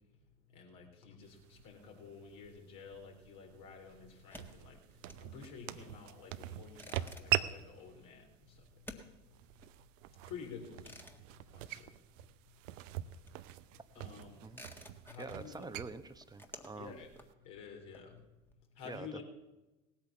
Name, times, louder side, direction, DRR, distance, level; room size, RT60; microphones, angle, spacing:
voice 1, 0.5-4.8 5.2-9.0 10.3-11.0 11.5-11.9 14.0-14.4 15.0-15.7 16.8-17.1 17.4-18.2 18.8-19.2, left 6 dB, 60° left, 1 dB, 3.9 m, -50 dB
sound 1, 1.2-17.3, right 14 dB, 70° right, 0.7 m, -43 dB
sound 2, 4.2-12.5 12.7-18.5, left 1 dB, 5° left, 1.7 m, -56 dB
voice 2, 15.2-17.0 18.8-19.2, right 3 dB, 10° right, 9 dB, 1.1 m, -46 dB
18.0 x 8.8 x 7.0 m, 1.1 s
hypercardioid pair, 70°, 39 cm